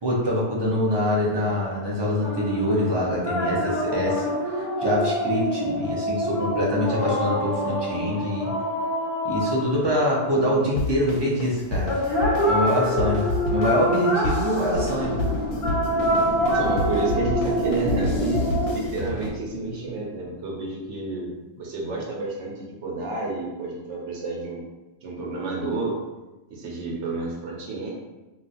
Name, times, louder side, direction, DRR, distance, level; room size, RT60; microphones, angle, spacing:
voice 1, 0.0-4.2 4.5-8.5 9.2-12.0 12.4-13.3 13.5-15.2, left 1 dB, 35° right, -4 dB, 0.4 m, -24 dB
sound 1, 2.2-10.5 11.9-18.8, equal, 30° left, 0.6 m, -26 dB
sound 2, 10.8-19.3, left 2 dB, 65° left, 0.7 m, -30 dB
sound 3, 14.7-20.6, left 1 dB, 5° left, 0.9 m, -35 dB
voice 2, 16.4-18.4 18.7-21.3 21.6-24.6 25.0-26.0 26.5-27.9, right 3 dB, 70° right, -2 dB, 1.1 m, -30 dB
2.4 x 2.3 x 3.9 m, 1.1 s
omnidirectional pair, 1.3 m